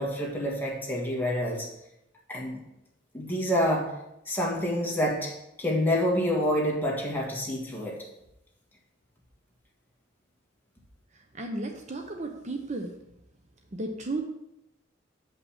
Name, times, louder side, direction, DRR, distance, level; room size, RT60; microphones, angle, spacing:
voice 1, 0.0-1.7 2.3-2.6 3.1-3.9 4.3-8.0, equal, 10° left, -2 dB, 1.7 m, -27 dB
voice 2, 11.3-12.9 13.7-14.2, right 2 dB, 35° right, 4 dB, 0.8 m, -33 dB
7.1 x 5.4 x 7.2 m, 0.86 s
head